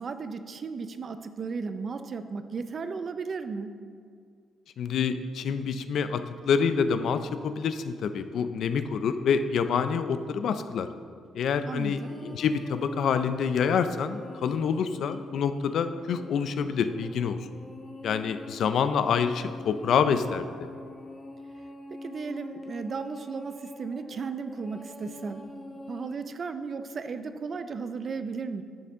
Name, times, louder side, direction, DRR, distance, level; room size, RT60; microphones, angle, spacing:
voice 1, 0.0-3.7 11.6-12.2 21.9-25.5 25.9-28.6, right 4 dB, 35° right, 10 dB, 0.4 m, -35 dB
voice 2, 4.8-10.9 11.4-17.4 18.0-20.5, left 6 dB, 55° left, 10 dB, 0.4 m, -27 dB
sound 1, 11.4-26.1, left 2 dB, 15° left, 0.8 m, -44 dB
10.5 x 6.9 x 3.7 m, 2.2 s
cardioid pair, 160°, 0 cm